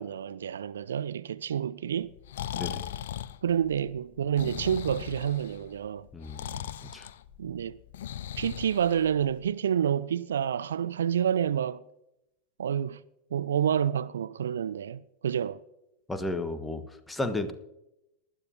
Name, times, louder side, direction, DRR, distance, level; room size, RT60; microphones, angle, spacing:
voice 1, 0.0-2.1 3.4-6.1 7.4-7.8 8.4-11.8 12.6-13.0 13.3-15.6, right 9 dB, 65° right, 0.4 m, -28 dB
Breathing, 2.0-9.5, left 11 dB, 60° left, 0.5 m, -39 dB
voice 2, 6.1-7.1 16.1-17.5, left 2 dB, 10° left, 1.3 m, -34 dB
19.5 x 12.5 x 2.8 m
figure-of-eight pair, 90°, 0 cm